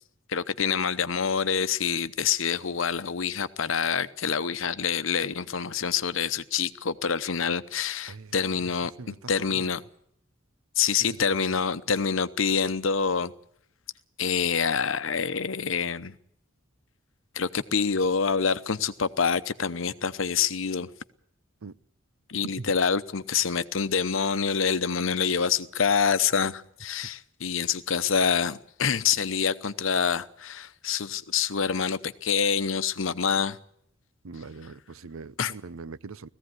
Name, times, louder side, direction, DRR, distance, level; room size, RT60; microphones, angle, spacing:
voice 1, 0.3-8.9 9.3-9.8 10.8-13.3 14.2-16.1 17.3-20.9 22.3-33.6 35.4-35.5, left 6 dB, 65° left, 0.9 m, -26 dB
voice 2, 8.6-9.8 11.1-11.5 21.6-21.8 22.6-22.7 34.2-36.3, right 4 dB, 85° right, 0.7 m, -42 dB
18.0 x 15.5 x 9.6 m
head